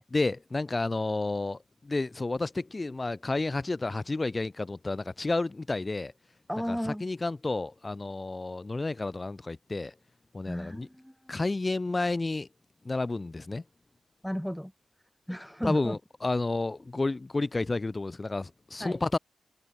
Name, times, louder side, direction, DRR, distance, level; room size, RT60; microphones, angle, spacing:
voice 1, 0.1-6.1 6.7-9.9 10.3-10.9 11.3-12.5 12.8-13.6 15.6-19.2, left 2 dB, 30° left, 2.5 m, -31 dB
voice 2, 6.5-7.1 10.4-11.4 14.2-14.7 15.3-16.0 18.8-19.0, equal, ahead, 3.3 m, -34 dB
cardioid pair, 70°, 0 cm